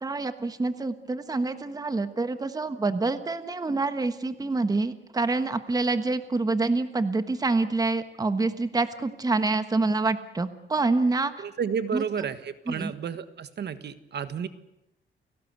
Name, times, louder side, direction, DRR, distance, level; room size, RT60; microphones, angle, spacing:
voice 1, 0.0-11.3 11.9-12.0 12.7-12.9, right 3 dB, 20° right, 10 dB, 1.3 m, -26 dB
voice 2, 11.4-14.5, right 7 dB, 60° right, 12 dB, 1.5 m, -31 dB
29.5 x 18.0 x 8.1 m, 0.89 s
wide cardioid pair, 140°, 20 cm